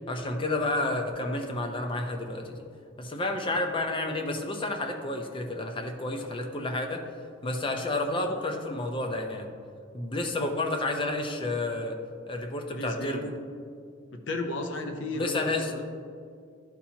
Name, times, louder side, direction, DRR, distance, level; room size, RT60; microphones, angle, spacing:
voice 1, 0.1-2.6 3.0-7.0 7.4-9.5 9.9-12.0 12.3-13.3 15.1-15.7, left 2 dB, 25° left, 4 dB, 0.5 m, -30 dB
voice 2, 12.7-13.2 14.1-15.8, left 2 dB, 65° left, 5 dB, 0.7 m, -34 dB
11.5 x 4.3 x 2.8 m, 2.3 s
head